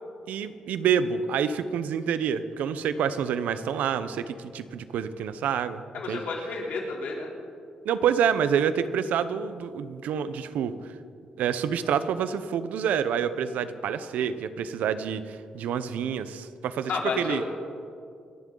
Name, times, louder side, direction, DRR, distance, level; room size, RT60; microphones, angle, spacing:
voice 1, 0.3-5.8 6.1-6.2 7.8-10.7 11.4-16.9 17.2-17.4, right 8 dB, 90° right, 12 dB, 0.8 m, -27 dB
voice 2, 5.9-7.3 16.9-17.5, left 4 dB, 75° left, -1 dB, 3.5 m, -31 dB
27.5 x 11.0 x 3.9 m, 2.3 s
cardioid pair, 110°, 3 cm